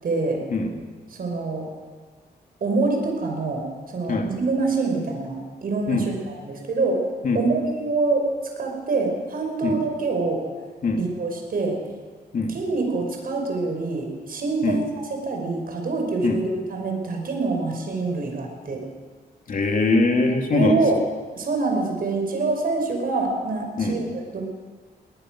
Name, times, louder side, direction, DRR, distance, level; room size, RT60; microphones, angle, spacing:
voice 1, 0.0-0.4 1.1-1.7 2.6-7.0 7.3-8.3 8.6-10.4 11.0-11.8 12.5-18.8 20.5-21.0 21.4-24.4, right 3 dB, 60° right, 2 dB, 5.5 m, -25 dB
voice 2, 19.5-20.8 23.8-24.0, left 3 dB, 50° left, 2 dB, 3.0 m, -22 dB
21.5 x 19.5 x 6.3 m, 1.4 s
wide cardioid pair, 125°, 17 cm